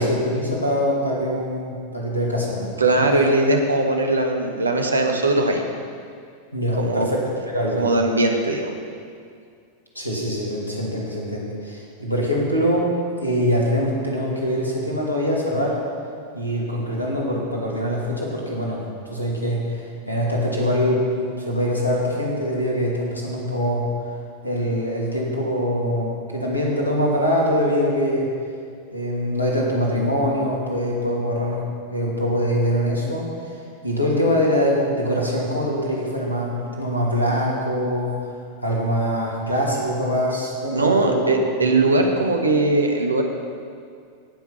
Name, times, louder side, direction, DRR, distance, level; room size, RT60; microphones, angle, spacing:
voice 1, 0.0-2.8 6.5-7.8 9.9-15.8 16.3-18.8 19.1-23.9 24.4-28.3 28.9-33.3 33.8-38.2 38.6-41.2 41.6-41.7 42.0-42.1, equal, 85° left, -3 dB, 2.5 m, -23 dB
voice 2, 2.8-5.6 6.8-7.1 7.8-8.7 40.7-43.2, right 2 dB, 75° right, 3 dB, 1.3 m, -20 dB
17.5 x 6.1 x 5.7 m, 2.2 s
figure-of-eight pair, 90°, 0 cm